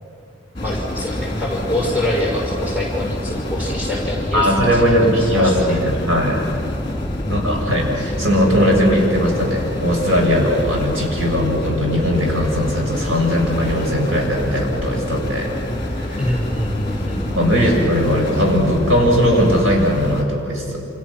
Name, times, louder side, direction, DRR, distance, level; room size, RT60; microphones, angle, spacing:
sound 1, 0.6-20.2, left 1 dB, 25° left, 3.0 m, -27 dB
voice 1, 0.6-5.8 7.2-7.4 16.2-17.3 17.6-17.7, left 1 dB, 5° right, -1 dB, 5.4 m, -25 dB
voice 2, 4.3-6.5 7.3-15.5 15.9-16.2 17.4-20.8, equal, 75° right, -1 dB, 7.0 m, -18 dB
28.5 x 28.0 x 6.2 m, 2.5 s
head